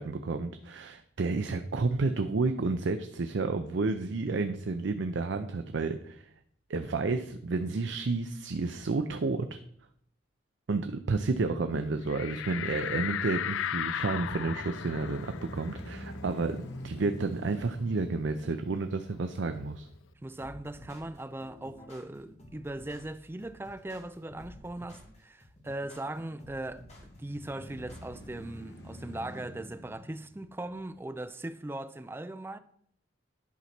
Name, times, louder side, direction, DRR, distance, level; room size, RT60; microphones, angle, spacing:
voice 1, 0.0-6.3 6.7-9.6 10.7-19.9, right 3 dB, 70° right, 0.5 m, -31 dB
sound 1, 12.1-17.3 17.6-17.7 18.1-19.7, left 10 dB, 90° left, 0.3 m, -37 dB
sound 2, 13.5-21.6 22.1-22.2 26.8-31.2, equal, 60° left, 1.7 m, -47 dB
voice 2, 20.2-26.8 27.2-32.6, right 1 dB, 10° right, 0.4 m, -39 dB
sound 3, 20.4-28.4, left 1 dB, 35° left, 1.9 m, -52 dB
11.0 x 4.1 x 5.9 m
head